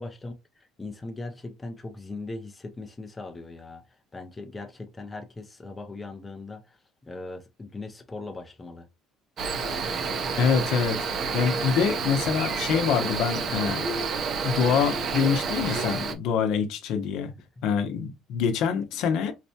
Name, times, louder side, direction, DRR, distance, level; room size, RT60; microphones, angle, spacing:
voice 1, 0.0-8.9, left 2 dB, 15° left, 0.5 m, -39 dB
Cricket, 9.4-16.1, right 5 dB, 40° right, 0.6 m, -29 dB
voice 2, 10.4-11.1 11.3-13.9 14.4-17.3 17.6-19.3, left 7 dB, 70° left, 0.7 m, -25 dB
4.1 x 2.2 x 2.7 m
cardioid pair, 135°, 0 cm